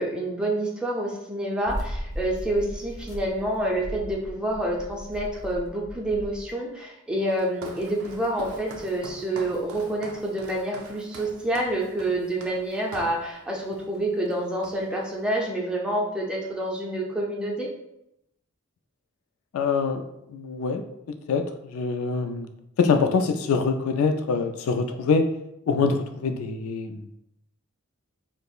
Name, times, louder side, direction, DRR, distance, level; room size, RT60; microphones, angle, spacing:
voice 1, 0.0-17.7, right 1 dB, 5° right, -2 dB, 0.5 m, -28 dB
sound 1, 1.7-6.5, equal, 90° left, 0.9 m, -37 dB
Walk footsteps, 7.3-13.2 13.7-14.0 14.3-15.1, right 2 dB, 75° right, 0.5 m, -44 dB
voice 2, 19.5-20.0 20.3-20.8 21.3-22.5 22.8-25.3 25.7-27.1, left 4 dB, 75° left, 7 dB, 0.3 m, -24 dB
5.2 x 2.0 x 2.3 m, 0.81 s
head